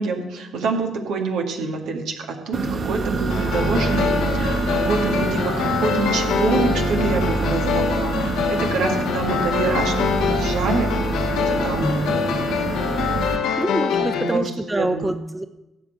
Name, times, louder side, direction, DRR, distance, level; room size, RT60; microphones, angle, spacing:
voice 1, 0.0-10.9 11.3-12.2 13.2-13.5 14.0-14.4 14.7-15.1, right 4 dB, 75° right, 2 dB, 2.1 m, -26 dB
sound 1, 2.5-13.4, right 3 dB, 50° right, 1.3 m, -25 dB
sound 2, 3.3-14.4, left 6 dB, 70° left, 1.1 m, -24 dB
voice 2, 13.6-15.5, right 1 dB, 15° right, 8 dB, 1.1 m, -26 dB
15.5 x 6.0 x 8.3 m, 0.98 s
hypercardioid pair, 45°, 0 cm